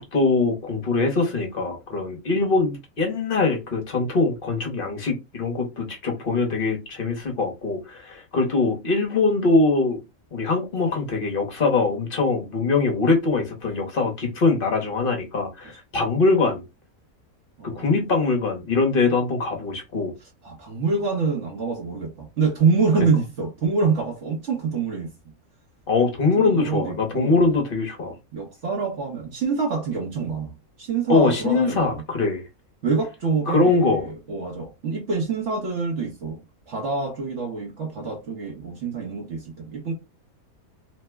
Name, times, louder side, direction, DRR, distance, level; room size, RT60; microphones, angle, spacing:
voice 1, 0.0-10.0 10.3-16.6 17.6-20.1 25.9-28.1 31.1-32.5 33.5-34.1, left 3 dB, 45° left, 0.9 m, -22 dB
voice 2, 17.6-17.9 20.4-25.1 26.4-27.6 28.3-30.5 30.8-32.0 32.8-36.4 36.7-39.9, right 4 dB, 60° right, 1.1 m, -26 dB
3.1 x 2.0 x 3.3 m
omnidirectional pair, 1.5 m